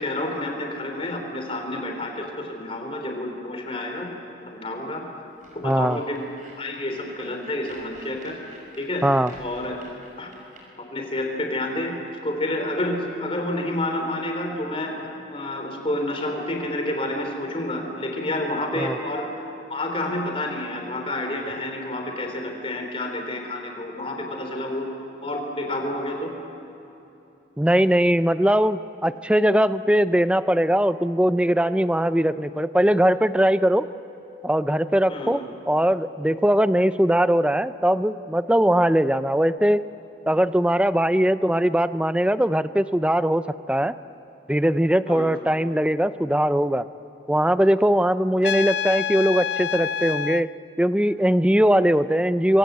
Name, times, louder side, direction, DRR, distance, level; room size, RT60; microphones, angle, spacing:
voice 1, 0.0-4.1 4.5-5.0 5.5-6.2 6.6-8.4 8.8-9.1 9.4-9.8 10.2-10.3 10.8-15.0 15.3-19.3 19.7-24.9 25.2-26.3 35.1-35.4 45.1-45.3, left 1 dB, 30° left, 3 dB, 3.7 m, -29 dB
sound 1, 5.4-10.6, right 2 dB, 45° right, 5.9 m, -49 dB
voice 2, 5.6-6.0 9.0-9.3 18.8-19.0 27.6-33.9 34.4-39.8 40.3-43.9 44.5-46.9 47.3-50.5 50.8-52.6, equal, 5° right, 13 dB, 0.5 m, -20 dB
sound 2, 31.3-39.6, equal, 20° right, 2.7 m, -46 dB
Trumpet, 48.4-50.4, left 8 dB, 75° left, 0.5 m, -27 dB
26.5 x 23.5 x 8.2 m, 3.0 s
head